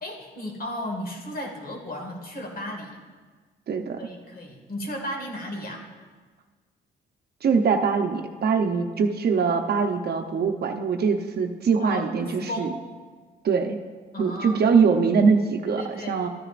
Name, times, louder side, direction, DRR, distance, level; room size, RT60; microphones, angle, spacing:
voice 1, 0.0-3.0 4.0-5.9 11.8-12.8 14.1-14.7 15.6-16.2, equal, 45° left, 1 dB, 2.0 m, -34 dB
voice 2, 3.7-4.0 7.4-12.7 13.4-13.8 14.2-16.3, right 5 dB, 55° right, 5 dB, 0.8 m, -22 dB
13.5 x 9.8 x 2.5 m, 1.5 s
cardioid pair, 90°, 20 cm